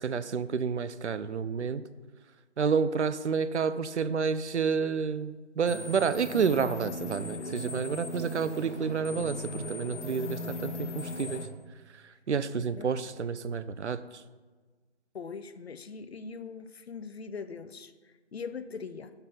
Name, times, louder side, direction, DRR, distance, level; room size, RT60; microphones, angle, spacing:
voice 1, 0.0-1.8 2.6-11.5 12.3-14.0, right 6 dB, 75° right, 14 dB, 0.6 m, -29 dB
sound 1, 5.7-11.5, left 2 dB, 80° left, 1.2 m, -38 dB
voice 2, 12.5-12.9 15.1-19.1, left 5 dB, 60° left, 12 dB, 0.6 m, -41 dB
6.7 x 5.8 x 5.9 m, 1.4 s
figure-of-eight pair, 160°, 35 cm